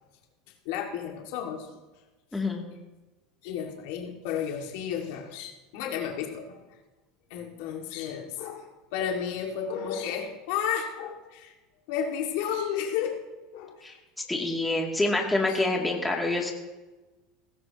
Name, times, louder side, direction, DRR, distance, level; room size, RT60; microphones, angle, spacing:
voice 1, 0.7-1.7 3.4-6.6 7.3-11.5 11.9-13.2 13.5-13.9 15.5-15.7, left 8 dB, 75° left, 1 dB, 2.1 m, -32 dB
voice 2, 2.3-2.6 13.8-16.5, left 2 dB, 10° left, -1 dB, 2.6 m, -27 dB
18.0 x 16.0 x 3.0 m, 1.2 s
supercardioid pair, 105°, 0 cm